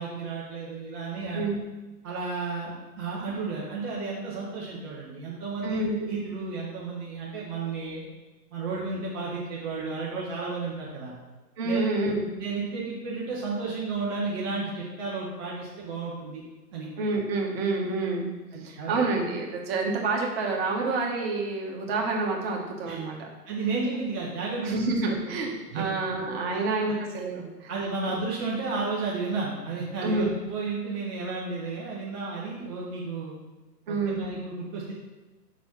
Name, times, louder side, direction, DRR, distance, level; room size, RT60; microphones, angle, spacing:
voice 1, 0.0-1.4 2.0-8.0 8.5-11.1 11.6-11.9 12.4-16.4 16.7-16.9 18.5-18.9 22.9-23.0 23.5-24.8 25.1-25.2 25.7-25.9 26.5-26.6 27.7-33.3 33.9-34.9, right 4 dB, 15° right, -6 dB, 0.6 m, -32 dB
voice 2, 5.6-5.9 11.6-12.2 17.0-18.3 18.6-23.3 24.6-27.7 30.0-30.3 33.9-34.2, right 3 dB, 35° right, -1 dB, 1.5 m, -28 dB
5.9 x 4.1 x 5.7 m, 1.1 s
figure-of-eight pair, 125°, 50 cm